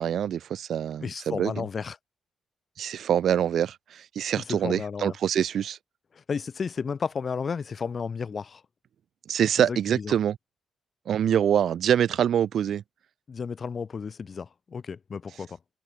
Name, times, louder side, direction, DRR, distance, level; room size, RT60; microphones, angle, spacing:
voice 1, 0.0-1.7 2.8-5.8 9.3-10.4 11.1-12.8, right 9 dB, 65° right, 1.9 m, -25 dB
voice 2, 1.0-2.0 4.5-5.1 6.1-8.6 9.6-10.1 13.3-15.6, left 5 dB, 35° left, 1.7 m, -33 dB
cardioid pair, 140°, 0 cm